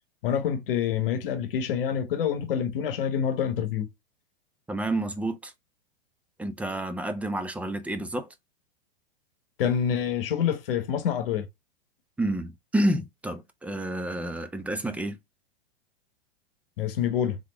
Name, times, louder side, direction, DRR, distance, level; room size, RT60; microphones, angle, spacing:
voice 1, 0.2-3.9 9.6-11.5 16.8-17.4, left 8 dB, 65° left, 1.0 m, -27 dB
voice 2, 4.7-5.5 6.4-8.3 12.2-15.2, right 1 dB, 5° right, 0.4 m, -29 dB
3.8 x 3.4 x 3.3 m
hypercardioid pair, 115°, 30 cm